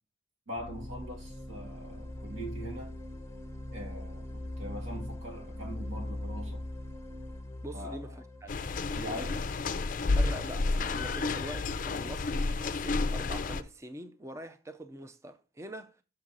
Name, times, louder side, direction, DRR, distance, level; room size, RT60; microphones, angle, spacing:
sound 1, 0.5-10.3, left 1 dB, 15° left, 0.8 m, -41 dB
voice 1, 0.5-2.9 3.7-6.6 7.7-8.2 9.0-9.5, equal, 90° right, 2.7 m, -42 dB
voice 2, 7.6-8.6 8.9-9.3 10.1-16.0, right 1 dB, 15° right, 0.4 m, -44 dB
sound 2, 8.5-13.6, left 3 dB, 45° left, 0.4 m, -30 dB
6.4 x 6.1 x 3.8 m
head